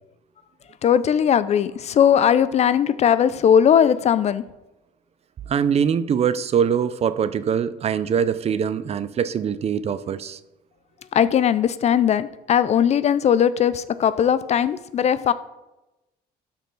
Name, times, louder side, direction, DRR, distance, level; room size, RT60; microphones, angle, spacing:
voice 1, 0.8-4.4 11.1-15.3, left 8 dB, 40° left, 15 dB, 0.4 m, -19 dB
voice 2, 5.5-10.4, right 7 dB, 40° right, 14 dB, 0.4 m, -23 dB
12.5 x 4.6 x 3.9 m, 1.0 s
cardioid pair, 110°, 17 cm